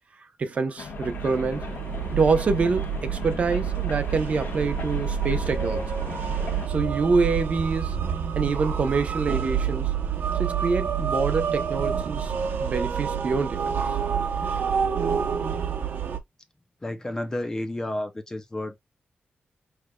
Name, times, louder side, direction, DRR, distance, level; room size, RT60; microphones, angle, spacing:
voice 1, 0.2-1.7 2.1-5.9 6.7-8.0 8.3-10.0 10.4-12.3 12.6-14.0, right 4 dB, 45° right, 0.7 m, -26 dB
sound 1, 0.8-6.7, left 5 dB, 85° left, 1.2 m, -39 dB
sound 2, 0.9-16.2, right 7 dB, 80° right, 0.8 m, -28 dB
voice 2, 15.3-15.6 16.8-18.8, left 1 dB, 15° left, 0.5 m, -32 dB
4.9 x 3.3 x 2.2 m
wide cardioid pair, 175°, 3 cm